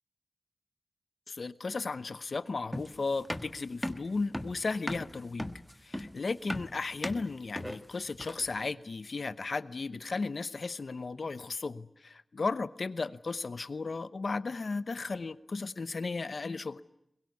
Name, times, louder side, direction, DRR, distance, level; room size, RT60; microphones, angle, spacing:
voice 1, 1.3-5.5 5.8-16.8, left 3 dB, 70° left, 14 dB, 0.9 m, -35 dB
sound 1, 2.7-8.6, equal, 5° left, 1.4 m, -38 dB
22.5 x 21.5 x 9.6 m, 0.79 s
wide cardioid pair, 75°, 0 cm